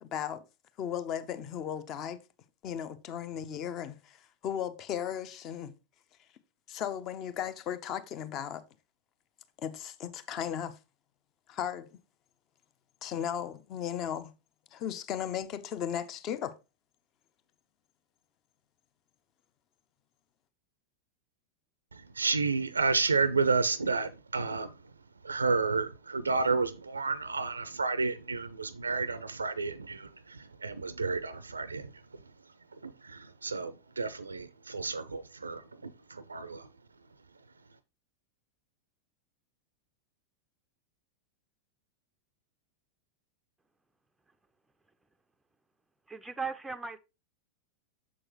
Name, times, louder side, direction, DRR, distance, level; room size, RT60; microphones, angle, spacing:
voice 1, 0.0-0.4 0.8-2.2 2.6-5.7 6.7-8.6 9.6-10.8 11.5-11.9 13.0-14.3 14.7-16.5, left 9 dB, 35° left, 0.7 m, -36 dB
voice 2, 21.9-24.7 25.2-31.9 32.8-36.7, right 4 dB, 75° right, 0.4 m, -31 dB
voice 3, 46.1-47.0, right 4 dB, 5° right, 0.4 m, -37 dB
7.2 x 6.2 x 3.0 m
figure-of-eight pair, 90°, 0 cm